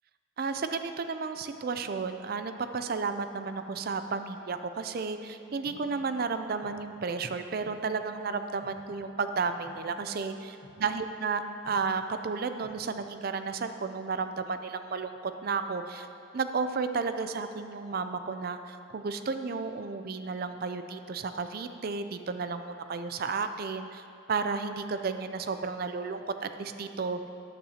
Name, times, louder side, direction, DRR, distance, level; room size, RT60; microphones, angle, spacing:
voice 1, 0.4-16.1 16.3-24.0 24.3-27.3, right 4 dB, 45° right, 9 dB, 0.4 m, -33 dB
sound 1, 5.6-6.7 7.6-8.7 9.6-10.7 11.6-12.7, right 1 dB, 25° left, 1.6 m, -52 dB
13.0 x 8.5 x 2.8 m, 2.6 s
head